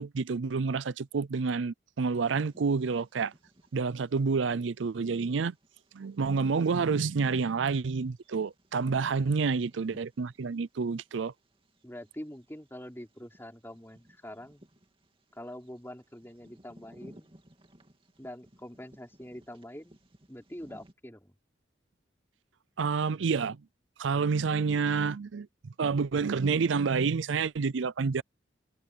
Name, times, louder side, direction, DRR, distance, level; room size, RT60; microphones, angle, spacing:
voice 1, 0.0-3.3 3.7-5.5 5.9-11.3 22.8-23.6 24.0-28.2, right 5 dB, 85° right, 0.5 m, -29 dB
Bird vocalization bird call bird song, 2.0-20.9, right 1 dB, 30° right, 2.6 m, -60 dB
voice 2, 9.0-9.5 11.8-14.6 15.3-17.3 18.2-20.0 20.3-21.4, equal, 10° left, 4.1 m, -45 dB
head